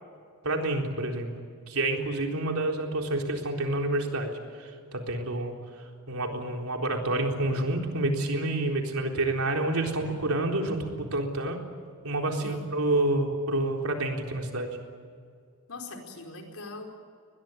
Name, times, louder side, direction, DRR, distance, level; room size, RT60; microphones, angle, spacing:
voice 1, 0.4-1.3 1.7-4.3 4.9-5.5 6.1-11.6 12.0-14.7, right 2 dB, 80° right, 2 dB, 3.9 m, -28 dB
voice 2, 15.7-16.9, left 2 dB, 75° left, 2 dB, 4.8 m, -41 dB
23.0 x 20.5 x 9.7 m, 2.2 s
head